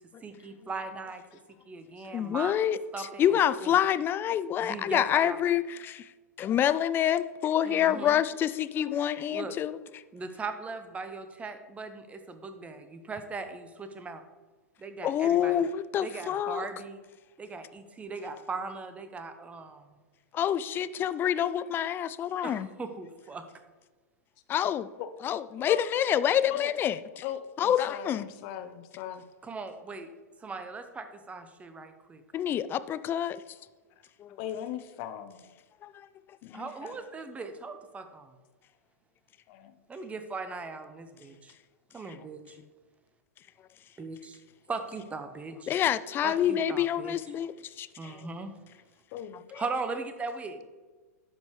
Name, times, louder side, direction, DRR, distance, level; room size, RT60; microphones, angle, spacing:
voice 1, 0.2-1.2 1.7-2.5 2.9-3.2 3.6-3.7 4.6-5.4 7.6-8.2 9.3-9.6 10.1-14.2 14.8-15.6 16.0-17.0 17.4-20.0 22.4-23.5 29.4-30.1 30.4-32.2 36.5-38.3 39.9-41.5 41.9-42.6 44.0-44.4 44.7-45.7 46.2-47.2 48.0-48.5 49.6-50.7, right 4 dB, 15° right, 9 dB, 0.8 m, -39 dB
voice 2, 2.1-6.1 6.4-10.0 15.0-16.6 20.3-22.7 24.5-24.9 25.2-27.2 27.6-28.3 32.3-33.4 34.2-34.4 35.8-36.1 45.7-48.3 49.5-49.6, left 10 dB, 25° left, 15 dB, 0.3 m, -27 dB
voice 3, 27.2-29.3 34.4-35.4 36.4-37.0 39.5-39.8 49.1-49.4, left 10 dB, 45° left, 8 dB, 0.7 m, -39 dB
12.0 x 5.2 x 3.2 m, 1.3 s
figure-of-eight pair, 100°, 9 cm